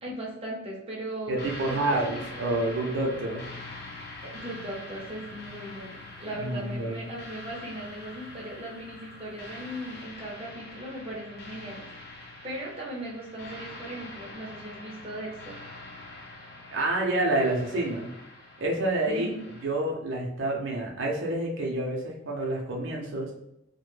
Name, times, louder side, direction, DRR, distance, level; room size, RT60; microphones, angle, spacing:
voice 1, 0.0-2.2 4.2-15.6 19.1-19.5, right 1 dB, 30° right, -4 dB, 0.6 m, -38 dB
sound 1, 1.3-19.7, left 2 dB, 55° left, 0.5 m, -44 dB
voice 2, 1.3-3.4 6.3-7.0 16.7-18.1 18.6-19.3 19.6-23.3, right 2 dB, 85° right, -1 dB, 0.6 m, -28 dB
2.1 x 2.1 x 3.1 m, 0.83 s
head